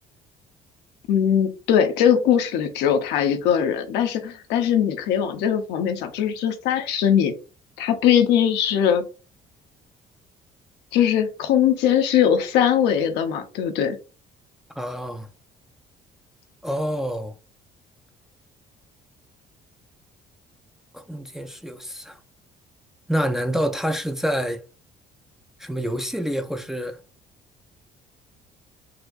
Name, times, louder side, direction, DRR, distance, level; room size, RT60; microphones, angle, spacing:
voice 1, 1.1-7.3 7.8-9.0 10.9-14.0, left 9 dB, 90° left, 0.6 m, -20 dB
voice 2, 14.8-15.3 16.6-17.4 20.9-22.2 23.1-24.6 25.6-27.0, equal, ahead, 0.4 m, -27 dB
4.1 x 2.5 x 2.3 m
cardioid pair, 110°, 17 cm